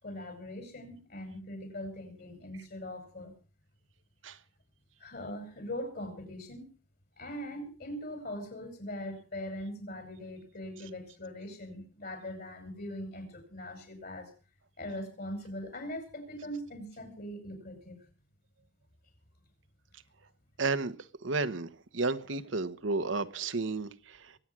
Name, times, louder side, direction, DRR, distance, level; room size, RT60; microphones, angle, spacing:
voice 1, 0.0-3.3 5.0-6.7 7.2-14.3 14.8-18.0, left 1 dB, 50° left, 6.1 m, -41 dB
voice 2, 20.6-20.9 21.2-24.4, right 3 dB, 75° right, 1.2 m, -32 dB
23.5 x 9.2 x 6.1 m
head